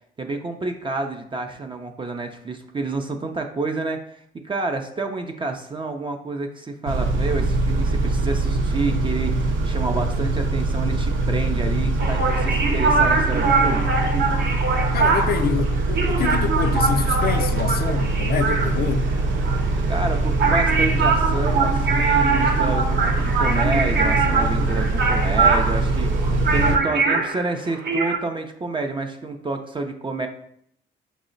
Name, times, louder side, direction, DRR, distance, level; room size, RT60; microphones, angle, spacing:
voice 1, 0.2-13.9 19.9-30.3, right 3 dB, 25° right, 0.4 m, -29 dB
Car / Idling / Accelerating revving vroom, 6.9-26.8, right 2 dB, 85° right, 0.6 m, -23 dB
sound 1, 12.0-28.2, right 4 dB, 55° right, 0.8 m, -23 dB
voice 2, 14.9-19.1 19.4-19.5, left 7 dB, 50° left, 0.4 m, -26 dB
5.4 x 2.0 x 3.8 m
cardioid pair, 90°, 20 cm